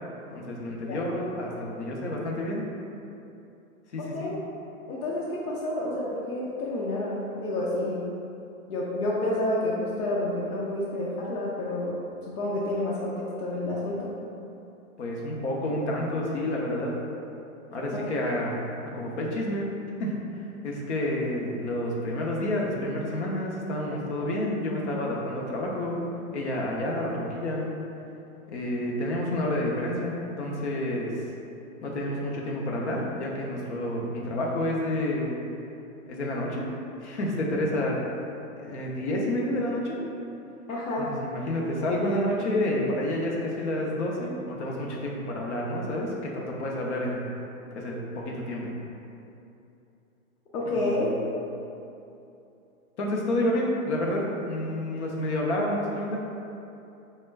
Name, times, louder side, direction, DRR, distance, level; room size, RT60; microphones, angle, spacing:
voice 1, 0.3-2.6 3.9-4.3 15.0-17.0 17.7-19.7 20.0-20.2 20.6-26.0 26.3-27.7 28.5-31.1 31.8-35.3 36.1-36.7 37.0-38.0 38.6-40.0 41.0-47.2 47.7-48.7 50.7-51.0 53.0-56.2, left 1 dB, 50° left, -2 dB, 0.7 m, -29 dB
voice 2, 4.9-8.0 8.7-11.9 12.2-14.1 17.9-18.0 40.7-41.1 50.5-51.1, left 1 dB, 80° left, -7 dB, 0.8 m, -29 dB
3.9 x 2.2 x 3.3 m, 2.8 s
hypercardioid pair, 165°, 43 cm